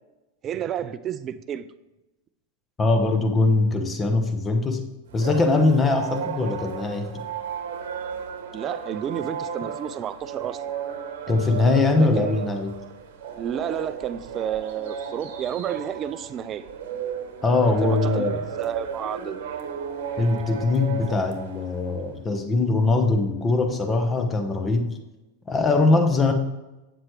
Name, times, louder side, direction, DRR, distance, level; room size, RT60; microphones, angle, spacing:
voice 1, 0.4-1.7 8.5-10.6 12.0-12.5 13.4-16.7 17.8-18.2 18.6-19.4, right 9 dB, 35° right, 14 dB, 0.4 m, -31 dB
voice 2, 2.8-4.8 5.1-7.2 11.3-12.8 17.4-18.4 20.2-25.0 25.5-26.3, left 3 dB, 20° left, 6 dB, 1.1 m, -22 dB
sound 1, 5.1-22.1, right 7 dB, 65° right, 1.0 m, -34 dB
7.9 x 7.3 x 3.2 m, 1.0 s
hypercardioid pair, 95°, 0 cm